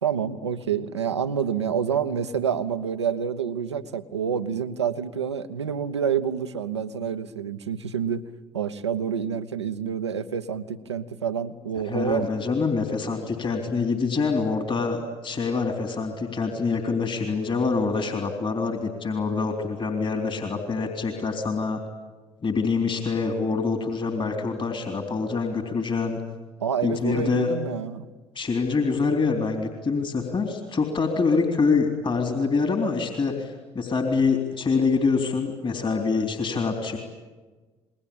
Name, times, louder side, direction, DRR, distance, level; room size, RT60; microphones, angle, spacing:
voice 1, 0.0-8.2 8.5-12.3 26.6-28.1, right 7 dB, 90° right, 10 dB, 1.0 m, -28 dB
voice 2, 11.8-21.8 22.4-26.2 26.8-27.5 28.4-37.0, left 4 dB, 35° left, 5 dB, 3.7 m, -25 dB
28.5 x 22.0 x 8.7 m, 1.3 s
figure-of-eight pair, 50°, 14 cm